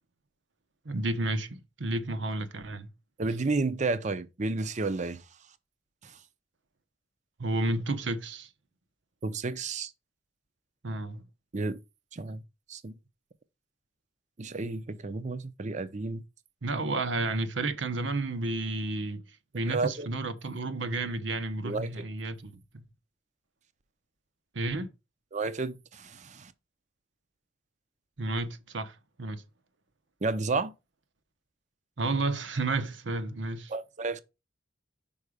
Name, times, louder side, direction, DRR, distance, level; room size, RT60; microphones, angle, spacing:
voice 1, 0.8-2.9 7.4-8.5 10.8-11.2 16.6-19.2 19.5-22.8 24.5-24.9 28.2-29.4 32.0-33.7, right 2 dB, 70° right, 0.9 m, -31 dB
voice 2, 3.2-5.2 6.0-6.1 9.2-9.9 11.5-11.8 12.1-12.4 12.7-13.0 14.4-16.2 19.7-20.1 21.6-21.9 25.3-26.5 30.2-30.7 33.7-34.2, right 3 dB, 40° right, 0.6 m, -31 dB
5.5 x 4.8 x 4.9 m
head